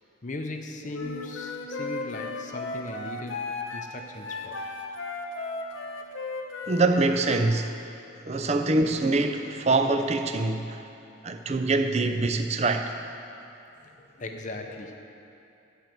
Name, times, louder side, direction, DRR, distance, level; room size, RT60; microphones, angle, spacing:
voice 1, 0.2-5.1 13.8-15.0, left 2 dB, 40° left, 4 dB, 0.6 m, -39 dB
Wind instrument woodwind instrument, 0.9-7.4, left 3 dB, 70° left, 0.9 m, -35 dB
sound 1, 1.0-7.3, left 3 dB, 65° right, 2.0 m, -49 dB
voice 2, 6.7-7.7 8.2-10.8 11.2-12.9, right 3 dB, 30° right, 7 dB, 0.5 m, -24 dB
13.5 x 4.6 x 7.7 m, 2.8 s
head